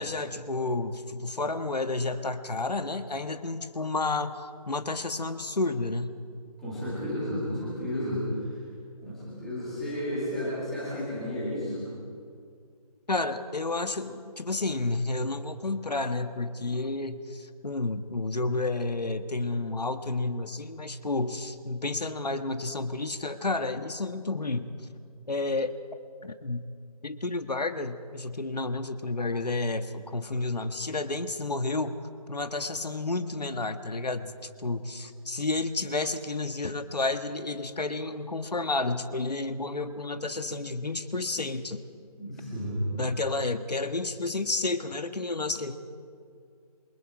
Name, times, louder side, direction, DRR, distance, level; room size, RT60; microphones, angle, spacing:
voice 1, 0.0-4.3 4.7-6.2 13.1-24.7 25.3-25.7 26.2-26.6 27.0-32.0 32.3-41.8 43.0-45.7, left 2 dB, 90° left, 9 dB, 1.7 m, -31 dB
voice 2, 6.6-8.2 9.0-11.9 42.2-42.8, left 1 dB, ahead, -11 dB, 2.0 m, -32 dB
29.0 x 23.0 x 4.9 m, 2.3 s
figure-of-eight pair, 180°, 20 cm